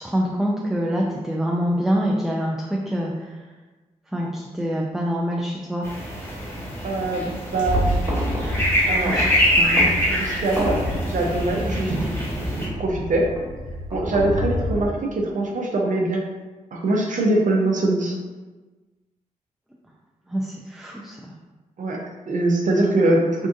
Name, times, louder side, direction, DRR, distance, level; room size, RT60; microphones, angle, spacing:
voice 1, 0.0-3.1 4.1-5.9 9.1-9.3 9.6-9.8 20.3-21.2, equal, ahead, -3 dB, 0.4 m, -25 dB
sound 1, 5.8-12.7, equal, 20° left, 1.3 m, -24 dB
voice 2, 6.8-7.2 7.5-8.1 8.9-9.2 10.1-12.1 12.6-13.3 13.9-16.2 16.7-18.2 21.8-23.5, right 2 dB, 60° right, 0 dB, 0.7 m, -23 dB
sound 2, 7.7-14.9, equal, 30° right, 1.3 m, -28 dB
3.6 x 2.5 x 2.6 m, 1.2 s
supercardioid pair, 50°, 15 cm